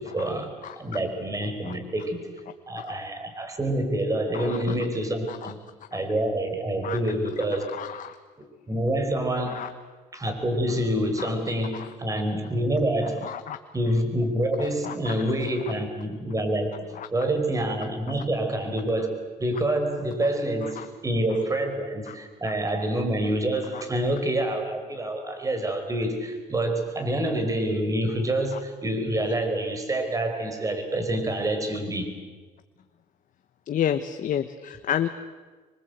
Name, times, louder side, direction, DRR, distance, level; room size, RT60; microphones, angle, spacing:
voice 1, 0.0-2.3 2.7-5.6 5.9-7.7 8.4-9.7 10.1-13.3 13.7-16.7 17.1-32.1, right 1 dB, 20° right, 6 dB, 4.9 m, -27 dB
voice 2, 4.3-4.7 5.3-5.5 5.9-6.0 6.8-7.0 7.7-8.2 9.5-9.7 11.2-11.3 11.7-11.9 13.2-13.6 14.6-15.1 17.0-17.1 20.8-20.9 22.1-22.2 23.7-23.8 33.7-35.1, left 9 dB, 50° left, 8 dB, 1.2 m, -31 dB
27.0 x 23.5 x 8.1 m, 1.3 s
cardioid pair, 110°, 17 cm